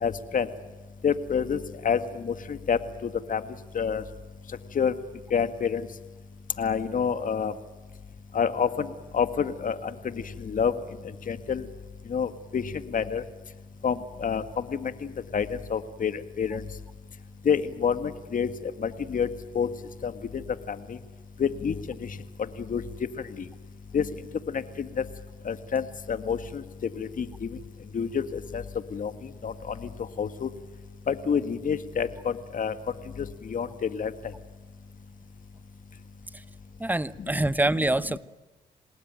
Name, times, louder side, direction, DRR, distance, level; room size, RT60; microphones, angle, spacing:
voice 1, 0.0-0.5 1.0-1.6 1.8-2.8 3.3-3.4 3.7-4.0 4.8-4.9 5.3-5.8 6.6-7.5 8.3-8.9 9.1-9.8 10.4-10.7 11.3-11.6 12.1-12.6 12.9-13.2 13.8-14.4 14.7-16.6 17.5-19.3 19.6-19.7 20.0-20.1 20.7-21.0 21.4-21.7 22.0-22.1 22.7-22.8 23.9-24.1 24.5-25.0 25.5-26.6 27.0-27.5 27.9-28.6 28.9-29.1 29.4-29.7 30.2-30.5 31.1-32.7 33.2-34.1 37.2-37.3, left 7 dB, 55° left, 10 dB, 1.9 m, -27 dB
voice 2, 36.8-38.2, right 2 dB, 10° right, 16 dB, 1.0 m, -25 dB
27.5 x 19.5 x 9.2 m, 1.2 s
supercardioid pair, 60°, 17 cm